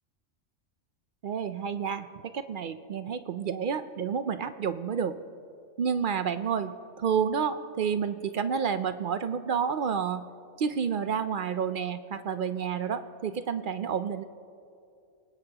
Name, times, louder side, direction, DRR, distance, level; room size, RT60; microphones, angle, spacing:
voice 1, 1.2-2.1 2.3-5.2 5.8-10.3 10.6-14.2, right 7 dB, 65° right, 11 dB, 0.5 m, -30 dB
27.5 x 18.0 x 2.9 m, 2.5 s
omnidirectional pair, 1.4 m